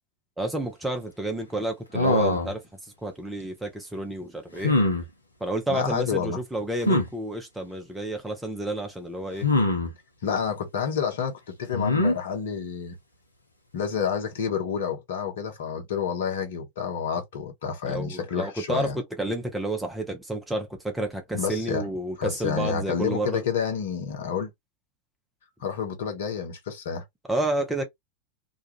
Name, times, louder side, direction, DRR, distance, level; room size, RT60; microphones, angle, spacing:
voice 1, 0.4-4.7 5.4-9.5 17.9-23.4 27.3-27.8, right 1 dB, 5° right, 0.7 m, -30 dB
sound 1, 1.9-2.6 4.6-5.1 6.8-7.1 9.4-9.9 11.7-12.2, left 2 dB, 80° left, 0.6 m, -22 dB
voice 2, 5.7-6.4 10.2-12.9 13.7-19.0 21.3-21.8 22.2-24.5 25.6-27.0, left 7 dB, 60° left, 0.9 m, -29 dB
2.3 x 2.3 x 2.9 m
figure-of-eight pair, 90°, 0 cm